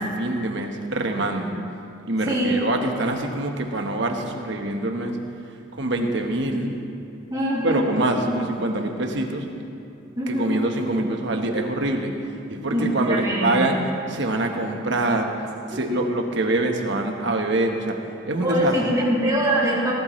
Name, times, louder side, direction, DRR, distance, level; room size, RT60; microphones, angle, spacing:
voice 1, 0.0-1.6 2.1-5.2 5.7-6.7 7.6-9.5 10.3-12.1 12.5-13.8 14.1-15.3 15.7-18.0 18.3-18.7, right 2 dB, 60° right, 3 dB, 1.2 m, -25 dB
voice 2, 2.2-2.6 7.3-7.9 8.2-8.3 10.2-10.6 12.7-13.8 15.7-16.1 18.4-19.9, equal, 20° right, -7 dB, 2.9 m, -24 dB
18.5 x 13.0 x 3.2 m, 2.6 s
head